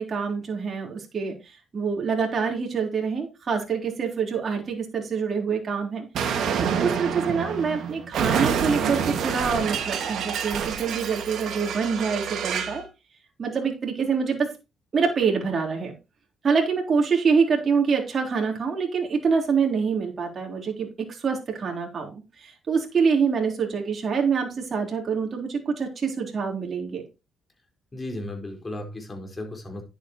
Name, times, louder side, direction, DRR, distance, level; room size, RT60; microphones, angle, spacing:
voice 1, 0.0-6.1 6.6-12.9 13.4-14.5 14.9-15.9 16.4-27.0, right 5 dB, 45° right, 1 dB, 3.9 m, -26 dB
Explosion, 6.1-12.8, right 7 dB, 70° right, 2.1 m, -27 dB
voice 2, 27.9-29.8, left 1 dB, 25° left, 3 dB, 4.5 m, -35 dB
10.5 x 8.7 x 3.0 m, 0.27 s
cardioid pair, 90°, 0 cm